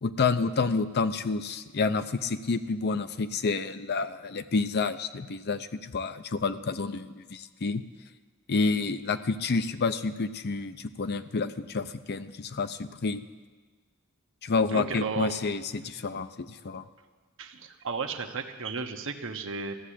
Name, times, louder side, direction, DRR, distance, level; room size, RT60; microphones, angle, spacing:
voice 1, 0.0-7.8 8.5-13.2 14.4-16.8, left 4 dB, 50° left, 11 dB, 0.6 m, -29 dB
voice 2, 14.7-15.3 17.4-19.7, right 5 dB, 65° right, 5 dB, 1.1 m, -34 dB
14.5 x 7.5 x 10.0 m, 1.4 s
head